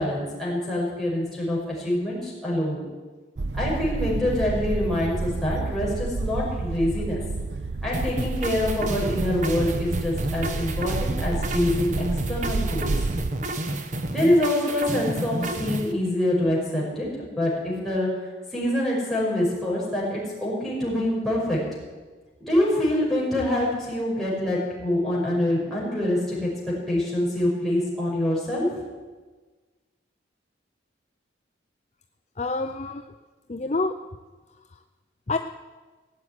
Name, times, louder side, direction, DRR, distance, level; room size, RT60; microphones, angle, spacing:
voice 1, 0.0-2.8 3.6-7.2 7.8-12.9 14.1-17.1 17.3-18.1 18.5-21.6 22.4-28.7, left 1 dB, ahead, -7 dB, 6.0 m, -25 dB
sound 1, 3.4-13.3, right 3 dB, 65° right, 0.6 m, -30 dB
sound 2, 7.9-15.9, right 1 dB, 40° right, 1.1 m, -31 dB
voice 2, 32.4-33.1 33.5-34.0 35.3-35.4, left 3 dB, 35° left, 6 dB, 0.6 m, -27 dB
18.5 x 8.0 x 9.6 m, 1.3 s
head